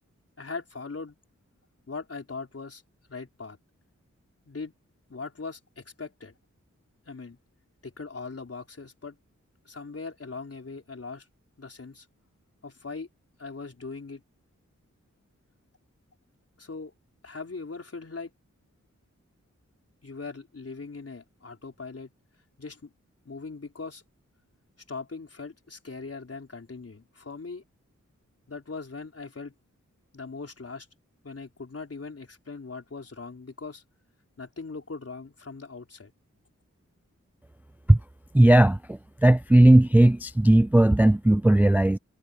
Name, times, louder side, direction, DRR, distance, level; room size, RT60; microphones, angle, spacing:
voice 1, 0.4-1.2 1.9-2.8 3.1-3.6 4.5-4.7 5.1-6.3 7.1-7.4 7.8-9.2 9.6-11.3 11.6-12.1 12.6-13.1 13.4-14.2 16.6-16.9 17.2-18.3 20.0-22.1 22.6-22.9 23.2-24.0 24.9-27.6 28.5-29.5 30.1-30.9 31.2-33.8 34.4-36.1, left 4 dB, 55° left, 4.5 m, -40 dB
voice 2, 38.3-42.0, right 1 dB, 5° right, 0.3 m, -17 dB
wide cardioid pair, 85°, 29 cm